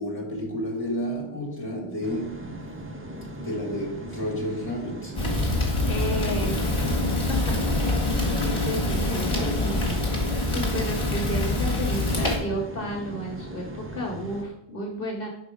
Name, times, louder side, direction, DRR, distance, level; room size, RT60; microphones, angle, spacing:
voice 1, 0.0-2.5 3.4-5.3, equal, 10° left, 1.6 m, -31 dB
sound 1, 2.0-14.4, right 1 dB, 15° right, 0.6 m, -39 dB
Fire, 5.2-12.4, left 2 dB, 30° left, 1.5 m, -25 dB
voice 2, 5.9-7.0 7.3-7.4 8.4-10.2 10.5-15.3, equal, 60° left, 1.1 m, -32 dB
5.1 x 4.2 x 4.9 m
omnidirectional pair, 1.0 m